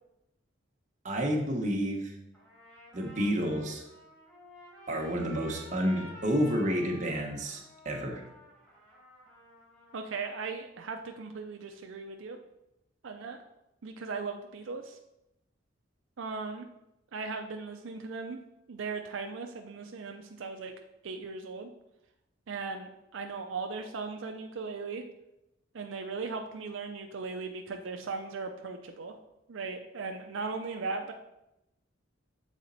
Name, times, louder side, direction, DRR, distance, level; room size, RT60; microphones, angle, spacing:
voice 1, 1.0-2.1 2.9-3.8 4.9-8.2, equal, 40° right, 1 dB, 1.1 m, -30 dB
Trumpet, 2.3-10.4, equal, 10° left, 2.1 m, -52 dB
voice 2, 9.9-12.4 13.0-13.4 13.8-15.0 16.2-16.7 17.1-18.4 18.7-20.7 21.0-21.7 22.5-25.0 25.7-29.1 29.5-31.1, right 4 dB, 85° right, 4 dB, 0.5 m, -38 dB
7.2 x 4.1 x 4.0 m, 0.88 s
head